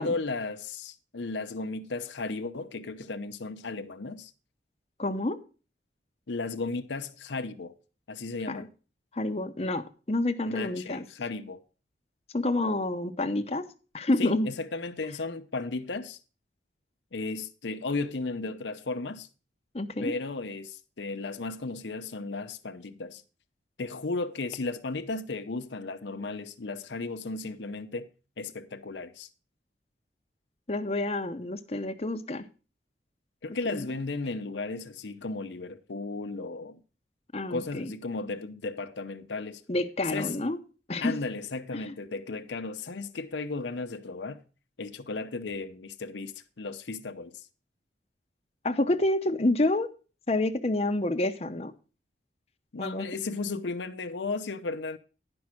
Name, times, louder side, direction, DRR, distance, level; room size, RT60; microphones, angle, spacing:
voice 1, 0.0-4.3 6.3-7.7 8.1-8.7 10.4-11.6 14.2-16.2 17.1-19.3 20.0-23.2 23.8-28.1 28.4-29.3 33.4-36.8 37.5-39.6 40.1-40.4 41.0-44.4 44.8-47.5 52.7-55.0, left 3 dB, 80° left, 0.7 m, -35 dB
voice 2, 5.0-5.4 8.5-8.7 9.1-11.0 12.3-13.7 13.9-14.5 19.7-20.1 30.7-32.4 33.6-33.9 37.3-37.9 39.7-40.6 40.9-41.1 41.7-41.8 48.6-49.9 50.3-51.7 52.8-53.1, left 2 dB, 35° left, 0.8 m, -28 dB
10.5 x 5.4 x 6.0 m
head